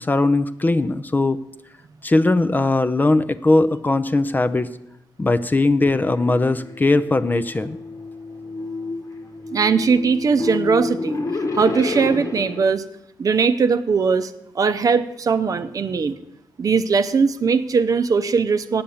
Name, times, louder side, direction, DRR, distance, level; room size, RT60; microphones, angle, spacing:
voice 1, 0.0-1.4 2.0-4.7 5.2-7.8, left 2 dB, 25° left, 13 dB, 0.5 m, -19 dB
sound 1, 5.9-12.7, left 3 dB, 45° left, 1.2 m, -30 dB
voice 2, 9.5-11.2 11.6-12.8 13.2-16.2 16.6-18.8, right 5 dB, 50° right, 10 dB, 0.7 m, -20 dB
8.7 x 7.7 x 7.1 m, 0.84 s
cardioid pair, 75°, 8 cm